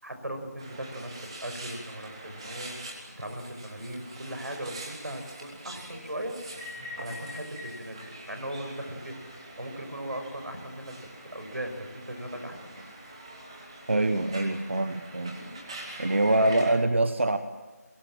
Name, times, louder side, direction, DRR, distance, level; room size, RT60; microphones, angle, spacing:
voice 1, 0.0-2.8 3.2-6.4 7.0-9.2 9.6-10.9 11.3-12.8 16.4-16.6, right 1 dB, 80° right, 6 dB, 6.0 m, -38 dB
sound 1, 0.6-16.7, right 1 dB, 20° right, 3.1 m, -44 dB
voice 2, 13.9-15.4 16.0-17.4, right 2 dB, 45° right, 10 dB, 1.1 m, -24 dB
26.0 x 22.5 x 7.5 m, 1.2 s
figure-of-eight pair, 175°, 9 cm